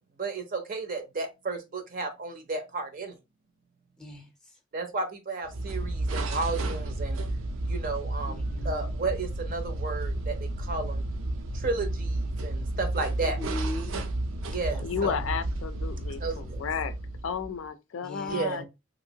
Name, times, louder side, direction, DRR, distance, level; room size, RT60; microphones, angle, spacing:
voice 1, 0.2-3.2 4.7-7.2 7.7-11.0 11.5-13.4 14.4-15.1 16.2-16.6 18.3-18.6, right 3 dB, 45° right, 0.5 m, -33 dB
voice 2, 4.0-4.6 8.3-8.9 13.2-14.0 14.7-15.4 18.0-18.6, left 2 dB, 5° left, 0.6 m, -40 dB
sound 1, 5.4-17.6, right 2 dB, 85° right, 0.5 m, -32 dB
voice 3, 14.8-16.9 17.2-18.6, left 6 dB, 75° left, 0.4 m, -32 dB
2.9 x 2.6 x 2.7 m
head